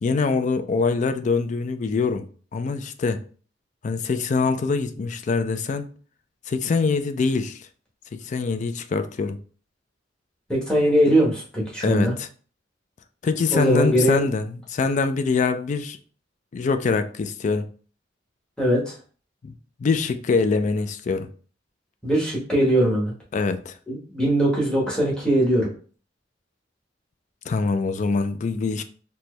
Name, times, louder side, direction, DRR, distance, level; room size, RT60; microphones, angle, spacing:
voice 1, 0.0-2.2 2.5-3.2 3.8-5.9 6.5-7.7 8.1-9.4 11.8-12.3 13.2-16.0 16.5-17.7 19.4-19.5 19.8-21.3 23.3-23.7 27.5-28.8, left 4 dB, 40° left, 0.3 m, -24 dB
voice 2, 10.5-12.1 13.5-14.2 18.6-18.9 22.0-23.1 23.9-25.7, right 1 dB, 5° left, 1.1 m, -21 dB
4.2 x 2.2 x 3.1 m
head